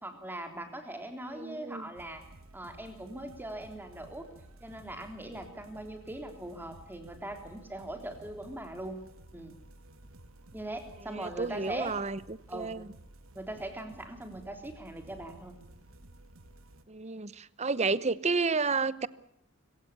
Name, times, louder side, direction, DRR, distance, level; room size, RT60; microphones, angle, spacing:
voice 1, 0.0-2.2 2.5-4.3 4.6-9.0 9.3-9.6 10.5-11.9 12.5-12.8 13.4-15.5, right 1 dB, 10° right, 6 dB, 3.4 m, -41 dB
voice 2, 1.3-1.9 11.1-12.9 16.9-19.1, right 4 dB, 35° right, 18 dB, 0.9 m, -31 dB
sound 1, 1.9-16.8, right 1 dB, 85° right, 1.7 m, -54 dB
25.5 x 16.5 x 8.6 m, 0.78 s
head